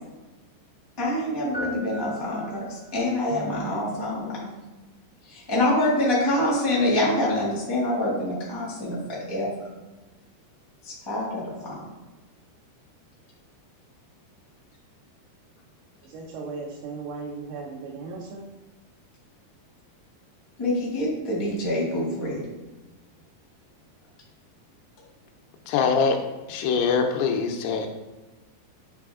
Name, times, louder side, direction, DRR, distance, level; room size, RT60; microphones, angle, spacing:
voice 1, 1.0-4.5 5.3-9.5 10.8-11.8 20.6-22.4, left 1 dB, 25° left, -6 dB, 0.5 m, -26 dB
sound 1, 1.5-3.0, equal, 55° left, 1.0 m, -38 dB
voice 2, 16.0-18.5, right 4 dB, 75° right, -3 dB, 2.6 m, -36 dB
voice 3, 25.7-26.2 26.5-27.9, left 5 dB, 80° left, 4 dB, 2.6 m, -23 dB
9.0 x 3.4 x 3.6 m, 1.2 s
omnidirectional pair, 4.7 m